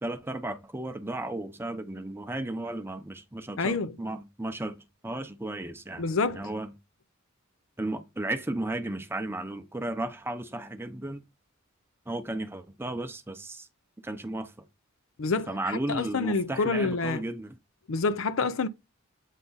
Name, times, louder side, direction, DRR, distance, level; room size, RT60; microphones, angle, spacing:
voice 1, 0.0-4.8 5.0-6.0 6.3-6.7 7.8-11.2 12.1-13.7 14.0-14.5 15.5-17.5, right 1 dB, 10° right, 0.7 m, -34 dB
voice 2, 3.6-4.0 6.0-6.5 15.2-17.2 17.9-18.7, left 4 dB, 70° left, 0.5 m, -28 dB
8.3 x 3.6 x 4.0 m
head